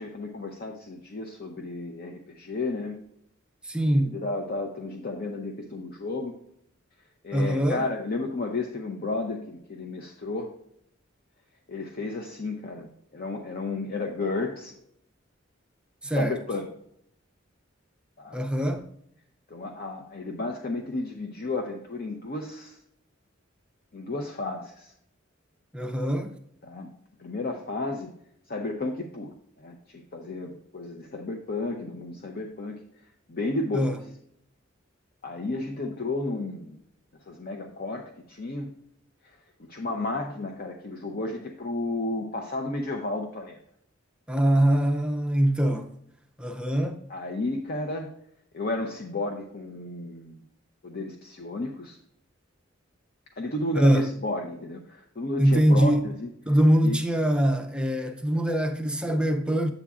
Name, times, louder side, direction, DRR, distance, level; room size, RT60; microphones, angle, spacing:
voice 1, 0.0-3.0 4.1-6.3 7.2-10.5 11.7-12.9 13.1-14.7 16.1-16.7 18.2-18.4 19.5-22.8 23.9-24.9 26.6-26.9 27.2-28.1 28.5-32.8 33.3-34.0 35.2-36.8 37.3-38.0 38.3-38.7 39.7-43.6 47.1-48.1 48.5-50.4 50.8-52.0 53.4-56.3 56.8-57.0 58.0-58.1, left 2 dB, 50° left, 0.7 m, -32 dB
voice 2, 3.7-4.2 7.3-7.8 16.0-16.4 18.3-18.9 25.7-26.3 33.7-34.0 44.3-45.9 46.4-47.0 53.7-54.1 55.4-56.0 56.5-59.7, right 1 dB, 5° right, 0.5 m, -23 dB
8.3 x 7.9 x 2.4 m
head